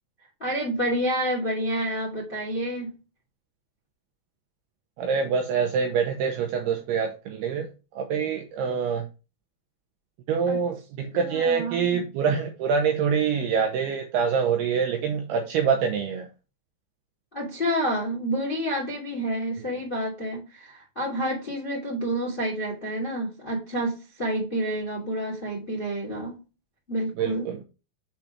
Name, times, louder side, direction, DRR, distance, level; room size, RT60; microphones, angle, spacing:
voice 1, 0.4-2.9 10.5-10.6 11.1-12.0 17.3-26.4 26.9-27.5, right 1 dB, 25° left, -2 dB, 1.1 m, -29 dB
voice 2, 5.0-7.7 8.0-9.1 10.3-16.3 27.2-27.6, right 6 dB, 80° right, 3 dB, 2.4 m, -25 dB
7.5 x 4.0 x 5.8 m, 0.31 s
omnidirectional pair, 5.5 m